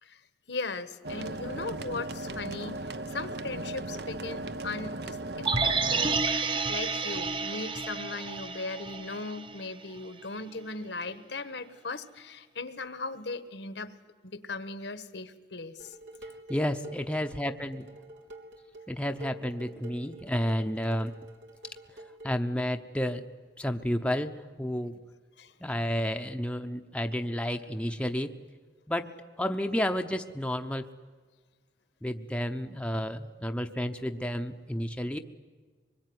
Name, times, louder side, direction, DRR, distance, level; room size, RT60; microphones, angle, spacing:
voice 1, 0.5-2.8 3.1-6.2 6.7-13.9 14.2-16.0 25.4-25.5, left 3 dB, 75° left, 12 dB, 1.3 m, -38 dB
sound 1, 1.0-6.2, right 2 dB, 60° right, 1.0 m, -37 dB
sound 2, 5.4-9.6 10.0-10.1, right 4 dB, 25° right, 1.0 m, -30 dB
Dishes pots and pans, 15.8-22.4, right 2 dB, 85° right, 3.6 m, -47 dB
voice 2, 16.5-17.9 18.9-21.1 22.2-23.2 23.6-25.0 25.6-28.3 28.9-30.9 32.0-35.2, equal, 5° left, 5 dB, 0.8 m, -31 dB
24.5 x 21.5 x 9.6 m, 1.5 s
head